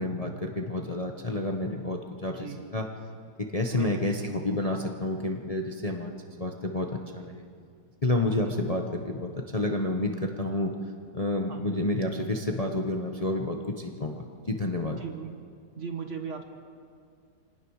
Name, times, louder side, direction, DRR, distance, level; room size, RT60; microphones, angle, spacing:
voice 1, 0.0-2.9 3.5-7.4 8.0-10.7 11.1-15.0, left 2 dB, 25° left, 2 dB, 1.1 m, -30 dB
voice 2, 3.7-4.1 11.5-11.7 15.0-15.4 15.8-16.4, right 6 dB, 45° right, 4 dB, 1.8 m, -37 dB
25.5 x 18.0 x 6.6 m, 2.2 s
omnidirectional pair, 1.9 m